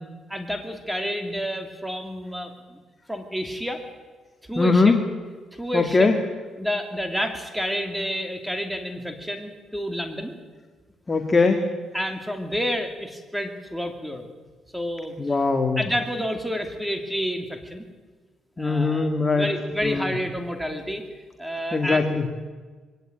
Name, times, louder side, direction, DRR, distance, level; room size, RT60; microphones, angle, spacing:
voice 1, 0.3-2.8 3.1-3.8 4.5-4.9 5.5-6.1 6.6-10.3 11.9-14.3 14.7-15.3 15.8-17.9 18.6-19.1 19.3-21.0 21.4-22.1, equal, 5° right, 6 dB, 2.7 m, -29 dB
voice 2, 4.6-5.0 5.7-6.2 11.1-11.6 15.2-15.8 18.6-19.5 19.8-20.1 21.7-22.3, left 3 dB, 25° left, 5 dB, 2.1 m, -21 dB
22.0 x 17.5 x 9.0 m, 1.4 s
cardioid pair, 90°, 0 cm